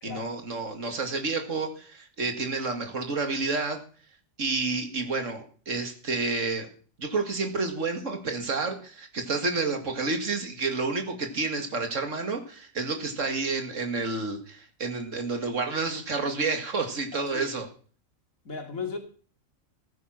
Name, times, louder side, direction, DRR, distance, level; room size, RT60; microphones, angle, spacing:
voice 1, 0.0-3.8 4.4-6.7 7.0-17.7, right 3 dB, 65° right, 2.4 m, -30 dB
voice 2, 17.1-17.5 18.5-19.0, left 5 dB, 85° left, 3.0 m, -36 dB
14.5 x 9.3 x 6.0 m
omnidirectional pair, 1.4 m